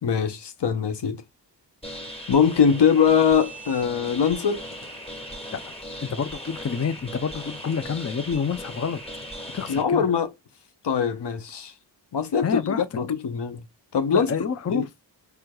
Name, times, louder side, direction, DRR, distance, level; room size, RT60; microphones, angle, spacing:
voice 1, 0.0-1.2 2.3-4.6 9.7-10.3 10.8-11.7 12.1-12.6 13.0-13.6 13.9-14.3 14.7-14.8, left 7 dB, 65° left, 0.8 m, -22 dB
sound 1, 1.8-9.8, equal, 15° left, 1.5 m, -38 dB
voice 2, 6.0-9.0 9.5-10.0 12.4-12.8 14.1-14.8, left 6 dB, 35° left, 0.5 m, -28 dB
4.6 x 3.4 x 2.2 m
cardioid pair, 55°, 45 cm